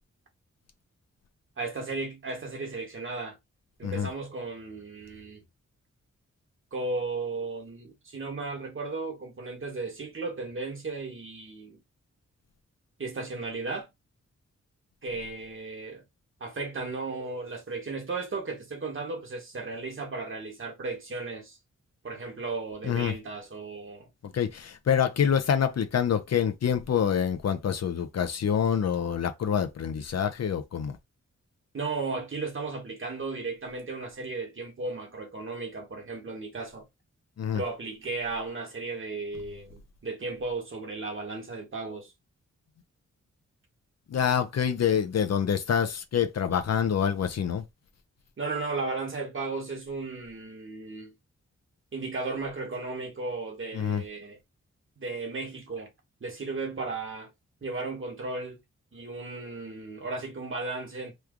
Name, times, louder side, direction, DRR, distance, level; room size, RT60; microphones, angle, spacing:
voice 1, 1.6-3.4 3.8-5.4 6.7-11.8 13.0-13.9 15.0-16.0 16.4-21.6 22.0-24.1 31.7-36.8 37.5-42.1 48.4-51.1 51.9-54.4 55.0-55.9 56.2-57.3 57.6-58.6 58.9-61.1, right 3 dB, 45° right, 1.2 m, -35 dB
voice 2, 24.3-31.0 37.4-37.6 44.1-47.6 53.7-54.0, left 8 dB, 60° left, 0.6 m, -26 dB
3.1 x 2.3 x 3.6 m
wide cardioid pair, 95°, 29 cm